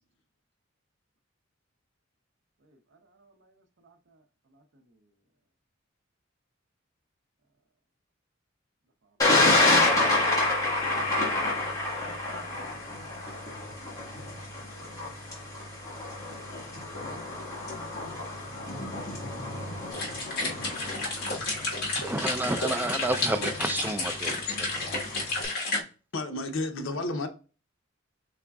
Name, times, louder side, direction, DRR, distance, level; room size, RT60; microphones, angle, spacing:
voice 1, 2.6-4.2 4.5-5.0 14.4-15.6 26.8-27.1, equal, 60° right, 0.7 m, -56 dB
Thunder, 9.2-25.4, left 2 dB, 20° left, 1.7 m, -29 dB
sound 1, 19.9-25.8, left 2 dB, 50° left, 1.6 m, -31 dB
voice 2, 21.9-24.9, right 2 dB, 10° right, 0.3 m, -31 dB
voice 3, 26.1-27.3, left 2 dB, 75° left, 0.7 m, -31 dB
4.9 x 3.6 x 2.3 m
head